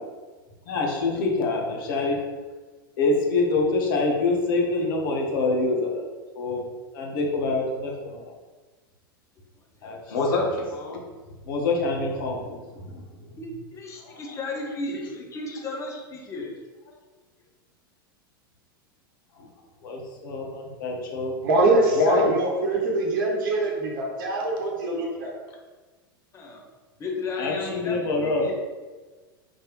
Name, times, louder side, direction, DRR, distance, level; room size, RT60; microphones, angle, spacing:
voice 1, 0.7-2.3 3.0-6.0 6.3-6.7 6.9-8.3 9.8-11.0 11.5-12.6 14.0-14.2 14.9-15.0 19.4-19.5 19.8-21.4 21.7-22.3 27.4-28.5, left 3 dB, 65° left, 0 dB, 1.1 m, -25 dB
voice 2, 9.8-10.1 13.4-16.6 26.3-26.6 27.0-28.5, left 2 dB, 25° left, 0 dB, 0.9 m, -34 dB
voice 3, 21.4-25.3, right 2 dB, 65° right, 0 dB, 0.9 m, -23 dB
4.3 x 3.2 x 3.0 m, 1.3 s
hypercardioid pair, 95°, 12 cm